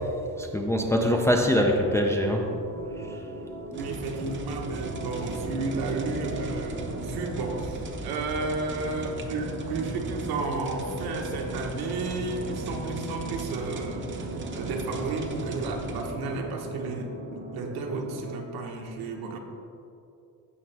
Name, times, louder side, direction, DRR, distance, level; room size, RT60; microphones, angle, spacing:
voice 1, 0.4-2.4, equal, 10° left, 1 dB, 0.4 m, -23 dB
sound 1, 1.6-18.4, right 1 dB, 60° right, 1.3 m, -39 dB
sound 2, 3.7-16.1, right 3 dB, 30° right, 0.7 m, -38 dB
voice 2, 3.8-19.4, right 3 dB, 75° right, 2 dB, 1.3 m, -33 dB
16.0 x 6.0 x 3.4 m, 2.7 s
cardioid pair, 170°, 38 cm